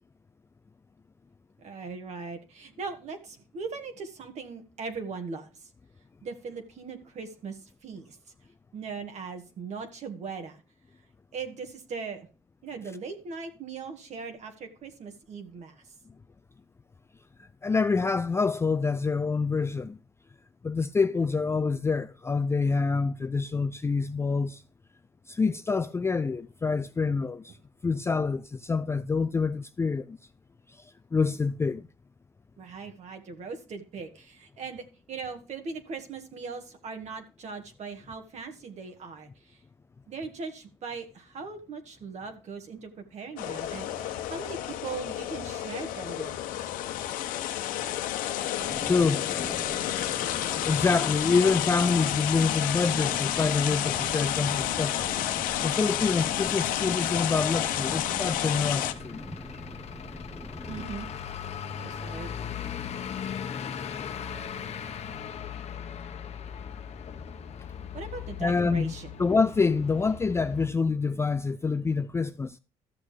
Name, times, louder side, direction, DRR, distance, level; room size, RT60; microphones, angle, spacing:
voice 1, 1.6-5.7 6.2-8.2 8.7-10.6 11.3-12.3 12.6-15.8 32.6-39.6 40.1-46.4 60.7-61.1 61.8-62.3 67.9-69.1, right 5 dB, 55° right, 1.8 m, -39 dB
voice 2, 17.6-20.0 20.6-24.6 25.3-27.6 27.8-30.2 30.7-31.9 48.8-49.3 50.7-55.1 55.6-59.2 68.4-68.9 69.2-72.6, left 4 dB, 20° left, 0.4 m, -26 dB
sound 1, 43.4-58.9, left 12 dB, 75° left, 1.0 m, -30 dB
sound 2, 48.6-60.9, equal, 5° right, 1.0 m, -43 dB
Truck / Idling, 53.0-70.7, left 8 dB, 50° left, 1.1 m, -40 dB
14.0 x 6.3 x 3.3 m
supercardioid pair, 85°, 14 cm